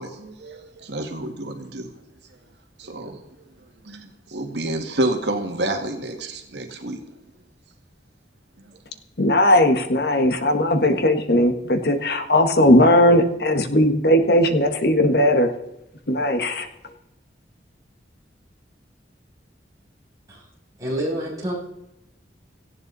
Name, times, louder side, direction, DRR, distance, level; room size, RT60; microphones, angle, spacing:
voice 1, 0.0-1.9 2.8-3.2 3.8-7.0, right 1 dB, 70° right, 4 dB, 2.1 m, -29 dB
voice 2, 9.2-15.5 16.1-16.7, left 1 dB, 60° left, 8 dB, 1.5 m, -18 dB
voice 3, 20.8-21.5, equal, 20° right, -6 dB, 7.5 m, -27 dB
17.5 x 14.5 x 4.1 m, 0.87 s
head